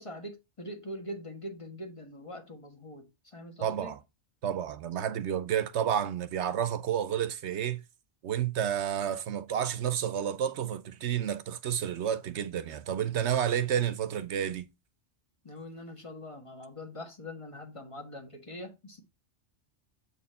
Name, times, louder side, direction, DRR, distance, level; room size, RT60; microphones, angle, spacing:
voice 1, 0.0-3.9 15.4-19.0, left 1 dB, 25° left, 1.4 m, -43 dB
voice 2, 3.6-4.0 4.4-7.8 8.2-14.7, right 9 dB, 75° right, 0.9 m, -30 dB
7.7 x 4.3 x 4.2 m
omnidirectional pair, 1.2 m